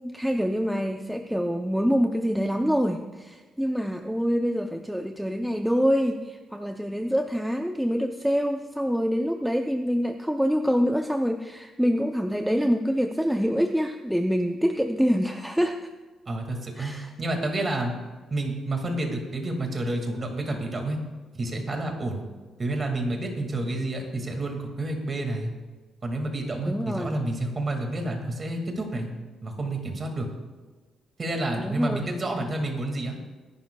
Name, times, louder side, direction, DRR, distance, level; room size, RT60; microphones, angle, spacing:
voice 1, 0.0-15.8 16.8-17.1 26.7-27.2 31.6-32.1, equal, ahead, 5 dB, 0.5 m, -26 dB
voice 2, 16.3-17.9 18.3-21.0 21.3-22.2 22.6-25.5 26.0-29.1 29.4-30.3 31.2-33.2, right 2 dB, 25° right, 3 dB, 1.9 m, -29 dB
24.0 x 11.5 x 2.3 m, 1.3 s
cardioid pair, 165°, 0 cm